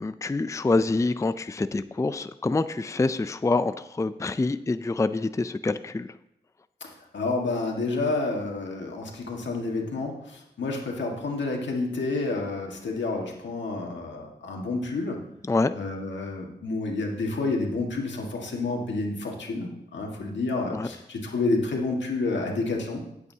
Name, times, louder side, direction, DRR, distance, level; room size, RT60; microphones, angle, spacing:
voice 1, 0.0-6.1 15.5-15.7 20.7-20.9, left 3 dB, 15° left, 13 dB, 0.4 m, -26 dB
voice 2, 6.8-15.2 15.7-23.0, left 3 dB, 85° left, 0 dB, 1.8 m, -29 dB
16.0 x 8.3 x 2.8 m, 0.80 s
cardioid pair, 50°, 18 cm